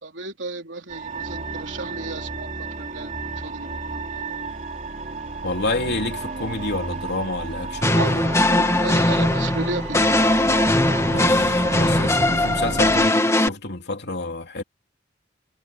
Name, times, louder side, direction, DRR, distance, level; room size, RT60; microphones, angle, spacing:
voice 1, 0.0-2.5 2.8-4.2 7.9-10.1, right 3 dB, 75° right, 3.9 m, -33 dB
sound 1, 0.9-13.1, right 3 dB, 40° right, 3.5 m, -32 dB
voice 2, 5.4-8.3 11.1-14.6, left 2 dB, 60° left, 3.1 m, -29 dB
sound 2, 7.8-13.5, left 1 dB, 15° left, 2.2 m, -20 dB
head